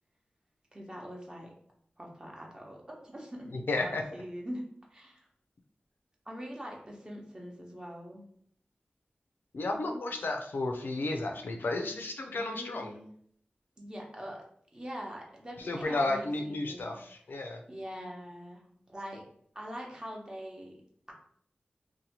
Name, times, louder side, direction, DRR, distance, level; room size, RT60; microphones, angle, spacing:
voice 1, 0.7-1.5 2.0-3.5 3.8-4.6 4.9-5.3 6.3-8.2 12.3-13.1 13.8-14.4 14.7-16.9 17.7-18.6 18.9-19.2 19.5-20.7, equal, 25° right, -1 dB, 0.7 m, -43 dB
voice 2, 3.5-4.0 9.5-12.9 15.6-17.6, left 2 dB, 80° left, 3 dB, 0.4 m, -32 dB
2.7 x 2.1 x 2.8 m, 0.63 s
wide cardioid pair, 80°, 3 cm